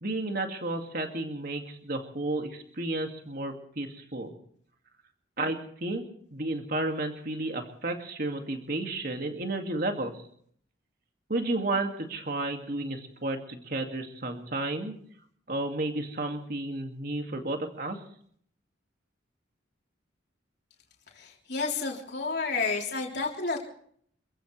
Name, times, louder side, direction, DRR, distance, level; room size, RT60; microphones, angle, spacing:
voice 1, 0.0-4.3 5.4-6.0 6.3-10.2 11.3-14.9 15.5-18.0, right 2 dB, 50° right, 4 dB, 2.3 m, -32 dB
voice 2, 21.1-23.7, left 4 dB, 60° left, -2 dB, 3.7 m, -31 dB
27.5 x 15.5 x 3.4 m, 0.62 s
head